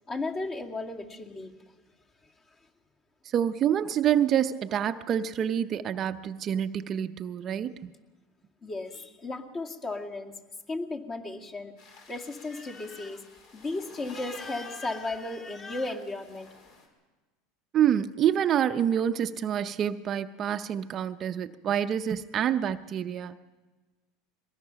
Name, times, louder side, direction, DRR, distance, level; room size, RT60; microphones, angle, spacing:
voice 1, 0.1-1.5 8.6-10.3 10.7-11.7 12.1-13.2 13.5-16.5, left 2 dB, 30° left, 2.3 m, -35 dB
voice 2, 3.2-7.9 17.7-23.4, right 9 dB, 40° right, 0.7 m, -27 dB
sound 1, 11.8-16.9, left 4 dB, 60° left, 4.6 m, -53 dB
23.0 x 20.0 x 5.8 m
supercardioid pair, 110°, 0 cm